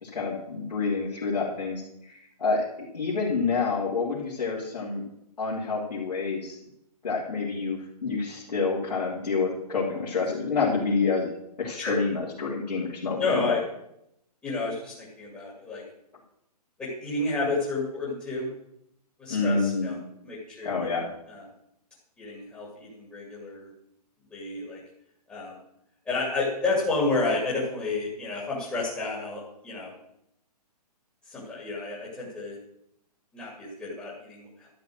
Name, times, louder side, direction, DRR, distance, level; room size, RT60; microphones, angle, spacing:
voice 1, 0.0-2.6 2.9-5.0 5.4-6.6 7.0-11.3 11.6-13.5 19.3-19.9 20.6-21.0, left 4 dB, 80° left, -8 dB, 3.1 m, -28 dB
voice 2, 13.2-13.6 14.4-15.8 16.8-18.5 19.2-20.0 20.2-20.7 21.3-21.4 22.2-23.7 24.3-24.8 25.3-25.6 26.1-29.9 31.3-32.6 33.3-34.7, left 3 dB, 10° left, -6 dB, 2.3 m, -30 dB
12.0 x 5.0 x 7.6 m, 0.78 s
hypercardioid pair, 155°, 21 cm